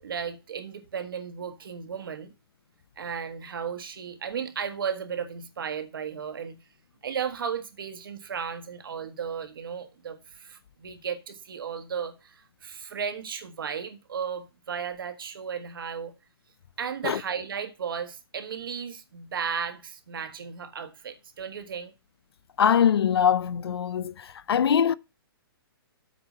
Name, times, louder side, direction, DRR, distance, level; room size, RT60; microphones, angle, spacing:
voice 1, 0.0-2.3 3.0-6.6 7.0-16.1 16.8-21.9, right 7 dB, 60° right, 1.4 m, -35 dB
voice 2, 22.6-24.9, left 8 dB, 80° left, 0.6 m, -22 dB
8.0 x 4.7 x 6.5 m
hypercardioid pair, 180°, 13 cm